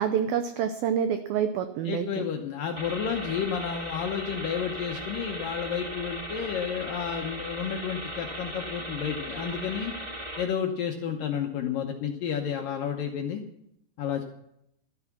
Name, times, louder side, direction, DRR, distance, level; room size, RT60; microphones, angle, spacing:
voice 1, 0.0-2.2, right 8 dB, 80° right, 9 dB, 2.2 m, -27 dB
voice 2, 1.9-9.9 10.4-13.4 14.0-14.2, left 7 dB, 70° left, 3 dB, 2.2 m, -31 dB
sound 1, 2.8-10.4, right 1 dB, 15° right, 1.4 m, -37 dB
13.5 x 13.0 x 6.0 m, 0.79 s
omnidirectional pair, 5.1 m